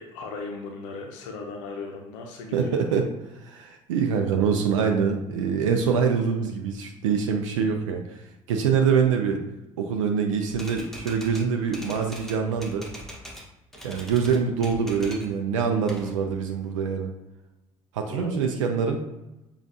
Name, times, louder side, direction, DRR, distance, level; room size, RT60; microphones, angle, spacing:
voice 1, 0.0-2.8 18.1-18.4, left 4 dB, 65° left, 2 dB, 0.6 m, -37 dB
voice 2, 2.5-3.1 3.3-8.2 8.5-9.4 9.8-12.8 13.8-17.1 17.9-19.0, right 6 dB, 75° right, 3 dB, 0.5 m, -24 dB
Typewriter, 10.5-13.5 13.7-15.3 15.6-16.7, equal, ahead, 1.3 m, -42 dB
6.9 x 2.4 x 2.7 m, 0.97 s
figure-of-eight pair, 60°, 16 cm